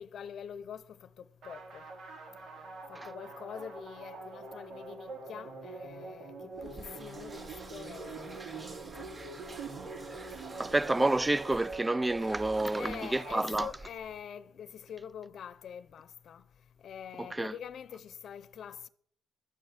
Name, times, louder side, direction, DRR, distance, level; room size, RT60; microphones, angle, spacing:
voice 1, 0.0-1.9 2.9-9.1 12.7-16.5 16.8-18.9, left 8 dB, 60° left, 0.7 m, -45 dB
sound 1, 1.4-14.0, right 3 dB, 70° right, 4.9 m, -45 dB
sound 2, 6.6-14.2, right 3 dB, 35° right, 3.8 m, -48 dB
voice 2, 10.6-13.7 17.3-17.5, right 2 dB, 15° right, 0.5 m, -29 dB
12.5 x 6.4 x 9.8 m
cardioid pair, 90°, 0 cm